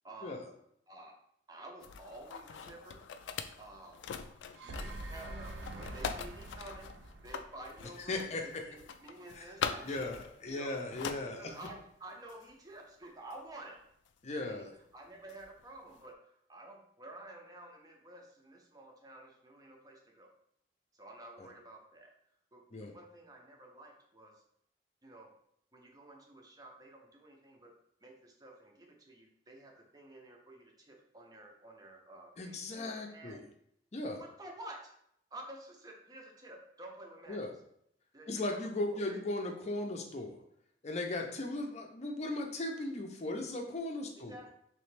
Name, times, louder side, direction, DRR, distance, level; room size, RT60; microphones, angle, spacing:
voice 1, 0.0-0.5 0.9-1.2 1.5-3.0 3.6-4.0 4.5-6.9 7.2-10.1 10.5-10.8 11.2-13.8 14.4-14.7 14.9-20.3 20.9-22.1 22.5-24.4 25.0-25.3 25.7-27.7 28.0-33.4 34.2-34.9 35.3-37.4 38.1-38.6 39.1-39.2 44.2-44.5, right 1 dB, 20° right, 1 dB, 0.6 m, -51 dB
sound 1, 1.8-11.9 12.3-12.5 13.3-13.4 14.1-14.2 15.3-15.6, left 6 dB, 85° left, 0.3 m, -43 dB
sound 2, 4.3-8.5, right 1 dB, 85° right, 0.5 m, -45 dB
voice 2, 8.1-8.6 9.4-9.5 9.8-11.5 14.2-14.7 21.4-21.5 22.7-22.9 32.4-33.4 33.9-34.2 37.3-37.5 38.3-40.4 40.8-44.3, left 2 dB, 40° left, 2 dB, 0.5 m, -37 dB
3.3 x 3.0 x 3.3 m, 0.71 s
head